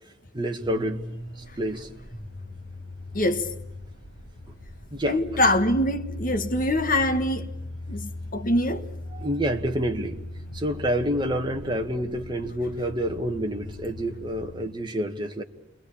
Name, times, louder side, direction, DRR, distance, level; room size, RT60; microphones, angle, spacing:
voice 1, 0.3-1.0 1.6-1.9 4.9-5.4 8.7-8.8 9.1-10.2 10.5-15.4, equal, 25° right, 1.6 m, -28 dB
sound 1, 0.6-14.7, left 1 dB, 70° left, 5.6 m, -39 dB
voice 2, 3.1-3.5 5.1-7.5 7.9-8.8, left 1 dB, 45° left, 1.6 m, -24 dB
29.0 x 22.0 x 8.6 m
head